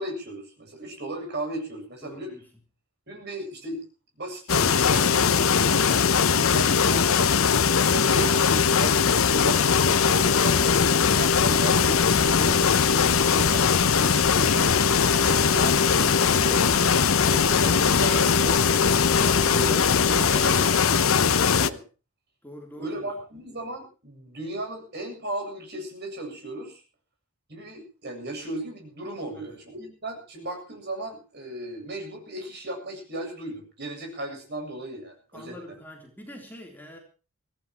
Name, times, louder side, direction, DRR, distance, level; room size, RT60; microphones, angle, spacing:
voice 1, 0.0-2.3 3.1-3.8 4.2-9.6 10.1-13.7 14.0-14.7 15.2-16.1 16.4-18.9 19.2-21.8 22.8-26.8 27.5-35.5, right 1 dB, 50° right, 3 dB, 7.8 m, -36 dB
voice 2, 2.0-2.5 22.4-22.9 29.2-29.5 35.3-37.0, left 1 dB, 10° left, 1 dB, 3.5 m, -46 dB
sound 1, 4.5-21.7, left 6 dB, 65° left, 0.8 m, -20 dB
sound 2, 4.8-12.4, right 3 dB, 25° right, 5.5 m, -47 dB
sound 3, 8.8-20.7, equal, 10° right, 3.5 m, -37 dB
24.0 x 17.0 x 3.0 m, 0.36 s
head